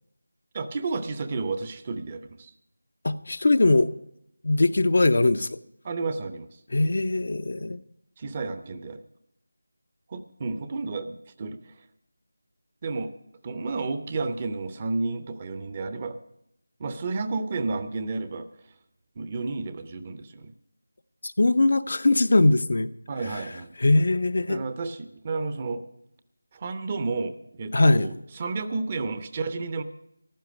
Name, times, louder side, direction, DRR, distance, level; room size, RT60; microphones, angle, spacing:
voice 1, 0.5-2.5 5.8-6.6 8.2-9.0 10.1-11.7 12.8-13.1 13.4-16.2 16.8-18.5 19.2-20.5 23.1-23.7 24.5-25.8 26.5-29.8, right 3 dB, 25° right, 0.9 m, -31 dB
voice 2, 3.0-3.9 4.4-5.6 6.7-7.8 21.2-22.9 23.8-24.6 27.7-28.1, left 2 dB, 55° left, 0.7 m, -21 dB
15.0 x 11.5 x 5.2 m
figure-of-eight pair, 165°, 0 cm